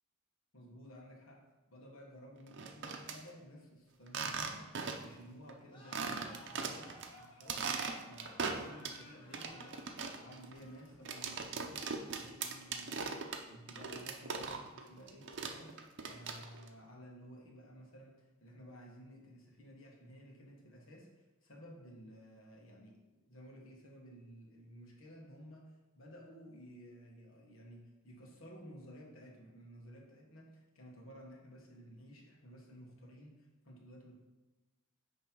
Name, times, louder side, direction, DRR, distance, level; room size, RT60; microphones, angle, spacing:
voice 1, 0.5-4.7 5.0-7.8 8.1-23.0 23.2-34.1, equal, 75° left, -1 dB, 1.5 m, -54 dB
sound 1, 2.5-3.2 4.1-5.2 5.5-5.6 5.9-7.1 7.4-9.0 9.3-14.8 15.1-16.7, right 5 dB, 55° right, 0.6 m, -39 dB
sound 2, 5.7-12.2, equal, 25° left, 1.0 m, -58 dB
9.3 x 3.3 x 4.6 m, 1.1 s
head